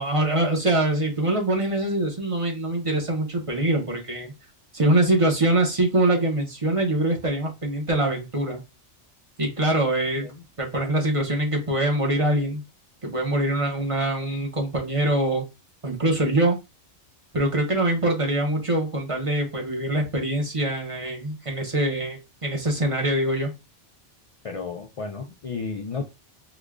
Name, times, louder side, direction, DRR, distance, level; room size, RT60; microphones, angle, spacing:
voice 1, 0.0-4.3 4.7-8.6 9.4-10.3 10.6-12.6 13.0-15.4 15.8-16.6 17.3-23.5, right 1 dB, 30° right, 1 dB, 0.8 m, -24 dB
voice 2, 24.4-26.0, left 4 dB, 60° left, 3 dB, 0.3 m, -32 dB
5.0 x 2.2 x 2.3 m, 0.26 s
omnidirectional pair, 1.2 m